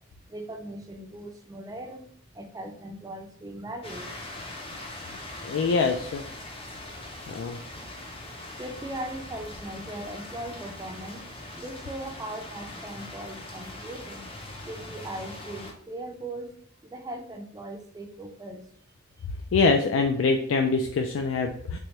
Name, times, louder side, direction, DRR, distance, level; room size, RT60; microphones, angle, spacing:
voice 1, 0.3-2.0 2.3-4.1 5.0-5.5 7.5-7.7 8.6-11.3 11.5-14.2 14.7-16.6 16.8-18.6, right 1 dB, 20° right, 5 dB, 0.4 m, -39 dB
sound 1, 3.8-15.7, left 1 dB, 30° left, 0.6 m, -41 dB
voice 2, 5.4-6.2 7.3-7.6 19.5-21.8, left 4 dB, 70° left, 4 dB, 0.3 m, -24 dB
3.4 x 2.9 x 3.1 m, 0.64 s
head